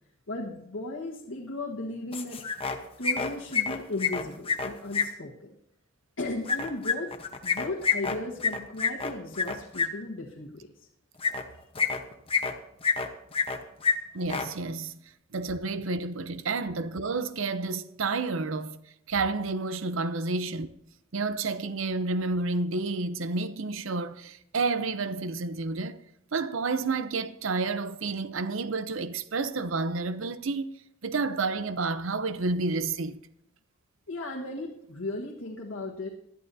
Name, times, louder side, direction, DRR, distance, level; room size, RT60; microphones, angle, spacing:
voice 1, 0.3-2.4 3.0-5.5 6.2-7.1 7.4-10.9 34.1-36.1, left 2 dB, 85° left, 1.4 m, -36 dB
sound 1, 2.1-2.8 3.0-5.1 6.5-9.9 11.2-11.4 11.8-12.5 12.8-13.6 13.8-13.9 14.2-14.5, left 6 dB, 30° left, 1.0 m, -27 dB
voice 2, 14.1-15.0 15.3-18.8 19.1-20.7 21.1-26.0 26.3-30.7 31.0-33.2, right 3 dB, 70° right, 0.7 m, -30 dB
19.5 x 12.0 x 2.7 m
head